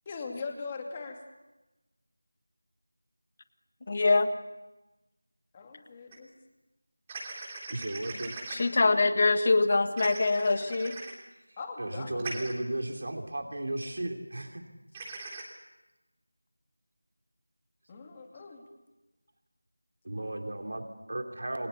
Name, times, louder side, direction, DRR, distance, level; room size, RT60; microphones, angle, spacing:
voice 1, 0.1-1.2 5.5-6.3 8.8-9.0 11.6-12.4 17.9-18.6, left 4 dB, 15° left, 3 dB, 2.5 m, -40 dB
voice 2, 3.9-4.3 8.5-10.9, left 3 dB, 35° left, 9 dB, 1.8 m, -24 dB
sound 1, 6.1-6.2 7.1-8.6 10.0-11.1 12.2-12.5 14.9-15.4, right 3 dB, 15° right, 3.3 m, -40 dB
voice 3, 7.7-8.4 11.5-14.6 18.3-18.4 20.0-21.7, right 1 dB, 55° right, 3 dB, 3.3 m, -35 dB
28.5 x 24.5 x 7.0 m, 1.1 s
figure-of-eight pair, 175°, 0 cm